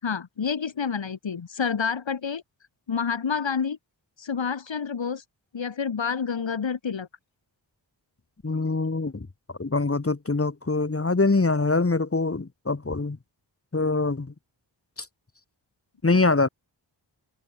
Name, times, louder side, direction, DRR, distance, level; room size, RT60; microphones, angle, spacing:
voice 1, 0.0-2.4 2.9-3.8 4.2-5.2 5.5-7.1, left 6 dB, 90° left, 6.0 m, -28 dB
voice 2, 8.4-9.3 9.6-13.2 13.7-14.3 16.0-16.5, left 3 dB, 30° left, 2.6 m, -24 dB
wide cardioid pair, 95°, 44 cm